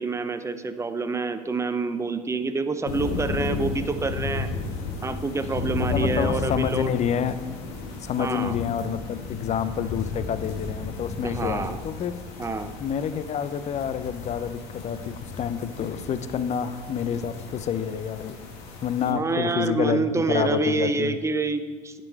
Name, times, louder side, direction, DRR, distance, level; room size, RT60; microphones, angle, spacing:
voice 1, 0.0-4.5 5.0-6.9 8.2-8.6 11.2-11.8 12.4-12.7 19.1-22.0, right 3 dB, 15° right, 10 dB, 0.6 m, -27 dB
sound 1, 2.9-19.1, left 4 dB, 65° left, 1.5 m, -33 dB
voice 2, 5.8-7.4 8.0-12.2 12.8-18.4 18.8-20.0 20.3-21.2, left 8 dB, 35° left, 13 dB, 0.6 m, -28 dB
10.5 x 5.3 x 4.5 m, 1.5 s
hypercardioid pair, 70°, 21 cm